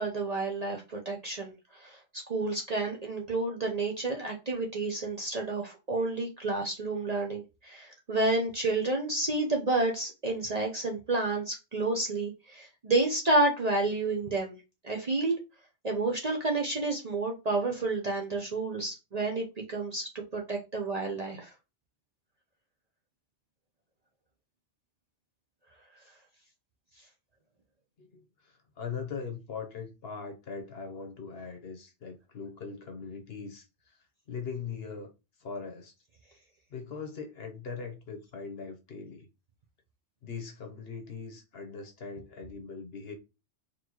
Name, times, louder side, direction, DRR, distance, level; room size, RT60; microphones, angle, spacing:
voice 1, 0.0-14.6 14.8-15.4 15.8-21.5, right 2 dB, 40° right, 0.7 m, -30 dB
voice 2, 28.0-34.0 34.3-35.1 35.4-35.9 36.7-39.3 40.2-43.1, left 5 dB, 55° left, 1.0 m, -40 dB
4.2 x 3.2 x 3.0 m
omnidirectional pair, 1.3 m